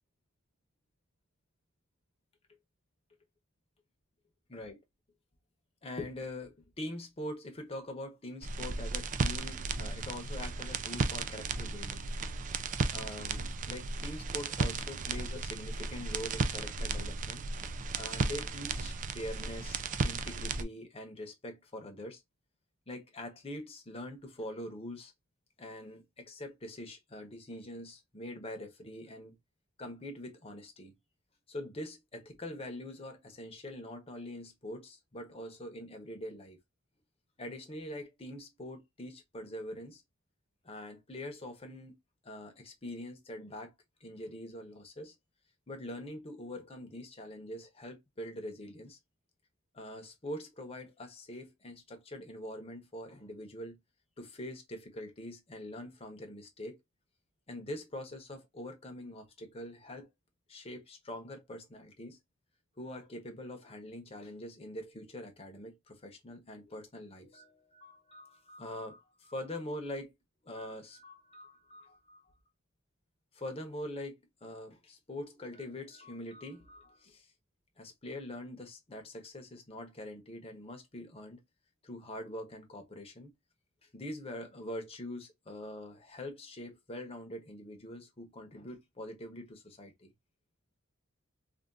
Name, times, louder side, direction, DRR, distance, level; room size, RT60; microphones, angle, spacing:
voice 1, 4.5-4.8 5.8-12.1 12.9-17.4 18.0-22.2 22.9-25.1 25.6-29.3 29.8-30.9 31.5-36.6 37.4-40.0 40.6-42.0 42.2-43.7 44.0-45.1 45.7-49.0 49.7-53.8 54.2-56.8 57.5-60.1 60.5-62.2 62.8-70.1 70.4-72.3 73.3-77.3 77.8-81.4 81.8-83.3 83.9-90.1, left 1 dB, 30° left, 0.9 m, -44 dB
sound 1, 8.4-20.6, right 4 dB, 40° right, 0.4 m, -35 dB
3.5 x 2.4 x 2.5 m
head